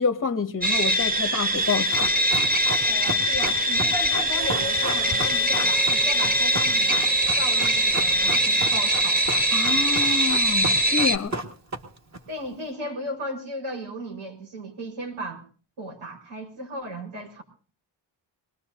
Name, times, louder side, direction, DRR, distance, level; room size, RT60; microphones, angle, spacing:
voice 1, 0.0-2.1 9.5-11.3, left 5 dB, 30° left, 0.7 m, -27 dB
sound 1, 0.6-11.2, equal, 20° right, 1.1 m, -22 dB
Run, 1.5-12.2 12.4-12.5, right 2 dB, 35° right, 1.9 m, -33 dB
voice 2, 2.8-7.0 7.4-9.3 12.3-15.4 15.8-17.4, equal, 85° right, 4.8 m, -35 dB
Harmonica, 4.3-9.8, left 1 dB, 55° right, 5.1 m, -41 dB
23.5 x 19.5 x 2.7 m
wide cardioid pair, 140°, 47 cm